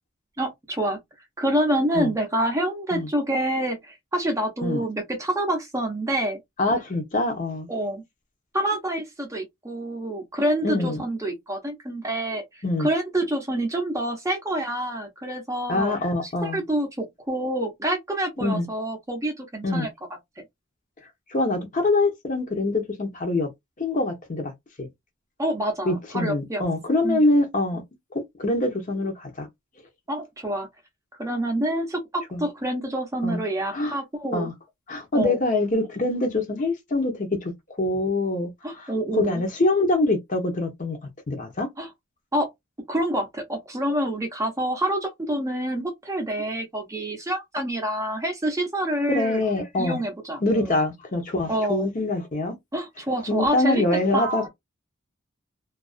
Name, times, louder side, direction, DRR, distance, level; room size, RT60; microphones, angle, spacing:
voice 1, 0.4-1.0 1.4-6.4 7.7-8.0 8.5-15.9 16.2-19.9 25.4-26.7 27.0-27.3 30.1-30.7 31.2-34.5 35.1-35.4 38.6-39.4 41.8-41.9 42.3-42.5 42.9-49.4 49.8-50.8 51.5-51.9 52.7-53.8 54.1-54.5, right 1 dB, 15° right, 0.6 m, -27 dB
voice 2, 6.6-7.7 10.6-11.0 12.6-12.9 15.7-16.6 18.4-18.7 19.6-19.9 21.3-23.5 23.8-24.5 24.8-24.9 25.8-27.8 28.1-29.5 32.3-32.5 33.2-33.4 33.7-34.0 34.3-34.5 34.9-37.5 37.8-38.5 38.8-41.0 41.3-41.7 49.1-50.0 50.4-52.6 53.3-54.5, left 2 dB, 40° left, 0.7 m, -24 dB
2.3 x 2.3 x 2.4 m
head